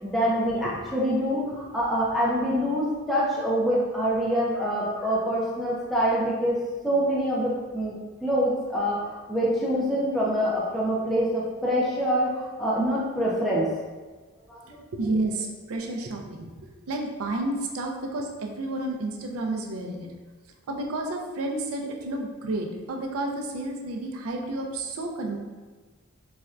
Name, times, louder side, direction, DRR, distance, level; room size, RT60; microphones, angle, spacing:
voice 1, 0.0-6.6 6.8-13.7 14.5-14.8, equal, ahead, -7 dB, 0.4 m, -25 dB
voice 2, 14.9-16.5 16.9-20.1 20.7-25.4, right 2 dB, 80° right, 1 dB, 0.4 m, -31 dB
4.2 x 2.2 x 2.4 m, 1.3 s
head